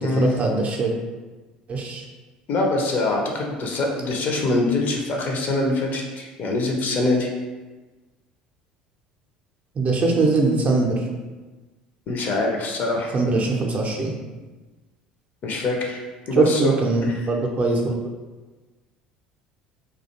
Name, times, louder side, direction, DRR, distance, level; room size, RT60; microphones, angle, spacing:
voice 1, 0.0-0.9 1.7-2.0 9.8-11.0 13.1-14.1 16.3-17.9, right 3 dB, 35° right, 0 dB, 0.4 m, -21 dB
voice 2, 2.5-7.3 12.1-13.2 15.4-16.0 16.3-16.7, left 2 dB, 45° left, 1 dB, 0.5 m, -24 dB
2.3 x 2.2 x 2.8 m, 1.2 s
figure-of-eight pair, 65°, 4 cm